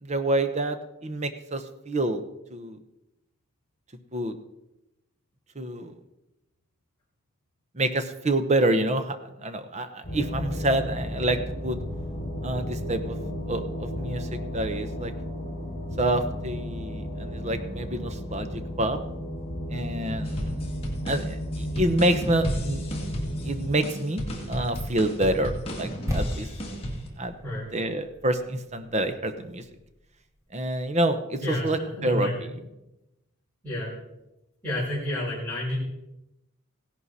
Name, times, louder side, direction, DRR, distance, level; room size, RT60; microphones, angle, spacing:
voice 1, 0.0-2.2 2.5-2.8 4.1-4.4 5.6-5.9 7.7-11.8 12.4-13.2 13.5-15.1 16.0-19.0 19.7-20.7 21.0-22.9 23.4-26.5 27.2-27.3 27.7-29.6 30.5-32.3, right 1 dB, 30° right, 9 dB, 0.9 m, -27 dB
sound 1, 10.0-23.7, equal, 45° left, 5.8 m, -33 dB
sound 2, 20.2-27.1, equal, 25° left, 2.3 m, -34 dB
sound 3, 26.1-30.0 30.3-30.4, left 1 dB, 15° right, 2.1 m, -36 dB
voice 2, 31.4-32.6 33.6-33.9 34.6-35.8, left 1 dB, 10° left, -9 dB, 5.3 m, -30 dB
16.5 x 11.0 x 4.2 m, 0.93 s
head